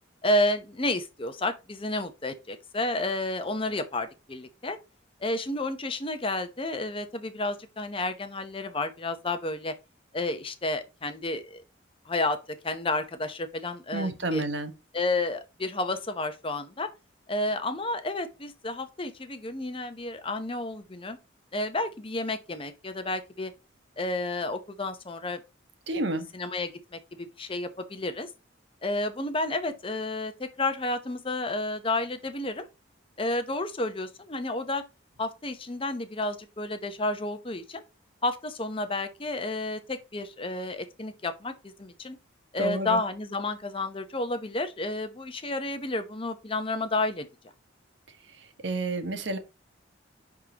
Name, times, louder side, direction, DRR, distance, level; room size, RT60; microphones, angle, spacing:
voice 1, 0.2-4.8 5.2-9.7 10.1-11.6 12.1-12.4 12.6-14.4 14.9-16.9 17.3-21.2 21.5-23.5 24.0-25.4 26.3-28.3 28.8-32.7 33.2-34.8 35.2-37.8 38.2-41.5 41.8-42.2 42.5-47.3, left 2 dB, 25° left, 0.8 m, -31 dB
voice 2, 13.9-14.7 25.9-26.3 42.6-43.0 48.4-49.4, right 2 dB, 65° right, 1.2 m, -30 dB
11.0 x 3.7 x 2.9 m
head